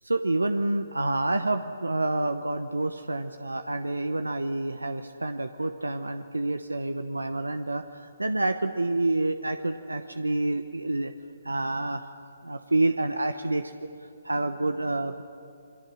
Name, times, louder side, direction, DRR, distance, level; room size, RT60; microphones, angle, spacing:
voice 1, 0.0-11.1 11.4-12.1 12.4-13.7 14.2-15.2, right 2 dB, 85° right, 9 dB, 0.9 m, -28 dB
27.5 x 23.0 x 6.3 m, 2.5 s
figure-of-eight pair, 135°, 0 cm